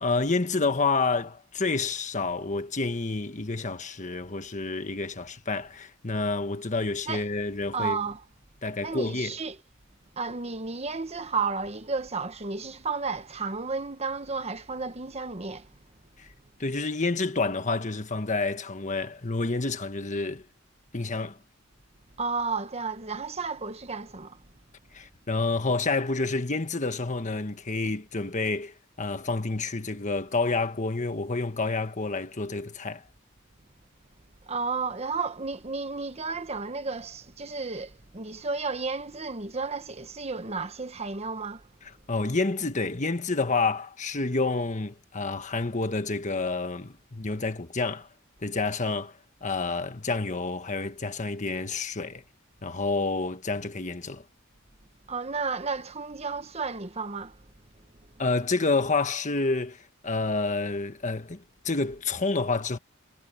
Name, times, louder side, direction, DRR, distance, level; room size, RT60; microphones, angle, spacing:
voice 1, 0.0-8.0 8.6-9.4 16.2-16.3 16.6-20.4 20.9-21.4 24.9-33.0 42.1-48.1 48.4-52.2 52.6-54.2 58.2-62.8, left 3 dB, 35° left, 1.4 m, -29 dB
voice 2, 7.7-8.2 8.8-9.6 10.2-15.7 22.2-24.4 34.4-41.7 55.1-57.4, right 4 dB, 30° right, 1.1 m, -32 dB
head